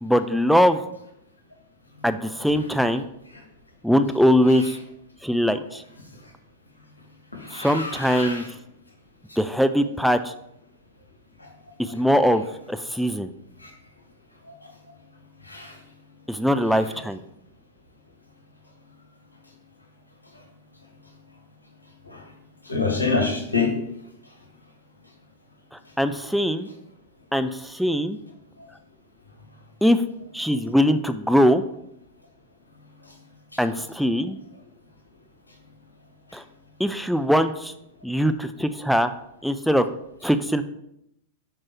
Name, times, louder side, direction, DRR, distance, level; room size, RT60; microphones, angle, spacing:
voice 1, 0.0-0.8 2.0-3.1 3.8-4.8 5.2-5.8 7.5-8.4 9.4-10.3 11.8-13.3 16.3-17.2 26.0-26.7 27.3-28.2 29.8-30.0 30.3-31.6 33.6-34.4 36.3-36.4 36.8-37.7 38.0-39.1 39.4-39.9 40.2-40.6, equal, ahead, 9 dB, 0.3 m, -21 dB
voice 2, 7.3-8.5 11.4-11.5 13.6-13.7 15.4-15.7 22.1-22.2 22.7-23.7, left 4 dB, 90° left, 1 dB, 1.3 m, -26 dB
5.8 x 4.5 x 4.5 m, 0.80 s
figure-of-eight pair, 95°, 0 cm